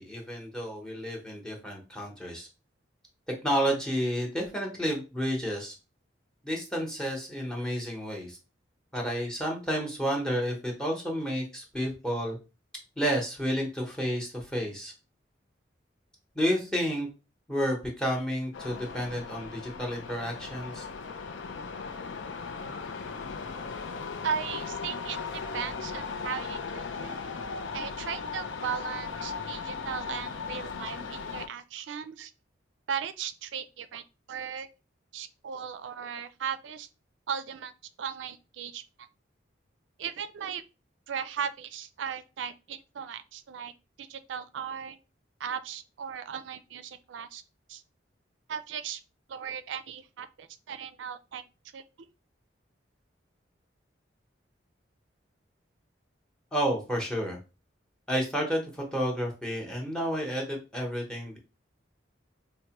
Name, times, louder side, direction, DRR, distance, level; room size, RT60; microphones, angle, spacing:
voice 1, 0.0-2.5 3.4-5.7 6.4-8.4 8.9-12.4 13.0-14.9 16.3-17.1 17.5-20.8 56.5-57.4 58.1-61.4, equal, 5° left, 0.8 m, -31 dB
sound 1, 18.5-31.5, left 5 dB, 80° left, 0.5 m, -37 dB
voice 2, 24.2-25.2 25.5-27.1 27.7-32.3 32.9-34.0 34.3-34.7 35.1-36.9 37.3-37.7 38.0-38.8 40.0-40.6 41.1-43.7 44.0-45.0 45.4-47.4 47.7-47.8 48.5-49.0 49.3-51.4 51.7-51.8, right 7 dB, 75° right, 0.4 m, -37 dB
4.5 x 2.1 x 2.9 m
head